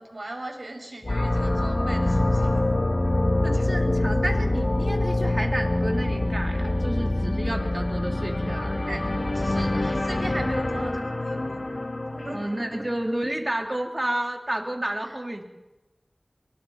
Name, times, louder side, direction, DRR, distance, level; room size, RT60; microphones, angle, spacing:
voice 1, 0.0-2.6 3.5-3.7 8.9-11.6 12.1-12.4, right 1 dB, 65° right, 2 dB, 5.5 m, -37 dB
sound 1, 1.0-13.0, left 2 dB, 70° left, 2.2 m, -25 dB
voice 2, 3.4-9.0 12.3-15.4, right 1 dB, 35° right, 2 dB, 3.3 m, -31 dB
25.0 x 24.0 x 4.3 m, 1.1 s
wide cardioid pair, 40°, 0 cm